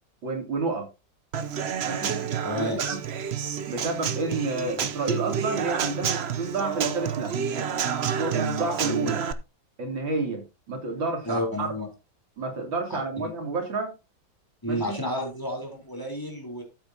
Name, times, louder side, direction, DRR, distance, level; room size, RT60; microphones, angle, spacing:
voice 1, 0.2-0.9 1.9-2.2 2.6-3.0 3.7-7.3 8.2-9.2 9.8-11.7 12.4-13.9 14.7-15.0, right 3 dB, 90° right, 4 dB, 3.6 m, -30 dB
Human voice / Acoustic guitar / Drum, 1.3-9.3, right 7 dB, 50° right, 0.8 m, -29 dB
voice 2, 2.4-2.8 4.8-4.9 11.3-11.9 12.9-13.3 14.6-16.6, equal, 10° left, 2 dB, 3.8 m, -31 dB
13.5 x 8.4 x 2.8 m, 0.26 s
omnidirectional pair, 2.0 m